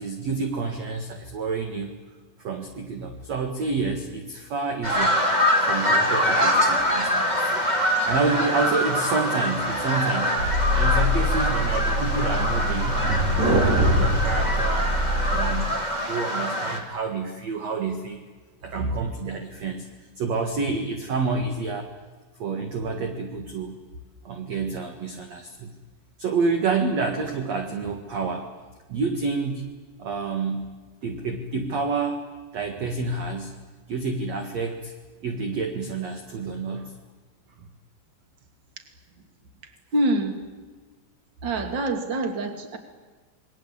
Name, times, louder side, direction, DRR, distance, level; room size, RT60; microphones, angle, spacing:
voice 1, 0.0-1.9 2.4-5.2 5.7-7.7 8.0-10.5 10.7-13.1 13.5-14.9 15.3-15.8 16.1-18.2 18.6-19.9 20.2-21.9 22.4-23.8 24.2-25.7 26.2-28.5 28.9-29.7 30.0-30.7 31.0-32.2 32.5-33.5 33.9-34.9 35.2-36.9, right 4 dB, 50° right, 4 dB, 2.2 m, -28 dB
sound 1, 4.8-16.8, equal, 10° right, 2.4 m, -24 dB
sound 2, 10.4-15.6, equal, 70° right, 7.5 m, -23 dB
voice 2, 39.9-40.3 41.4-42.8, right 1 dB, 30° right, 6 dB, 2.6 m, -25 dB
28.5 x 21.5 x 8.5 m, 1.4 s
omnidirectional pair, 5.1 m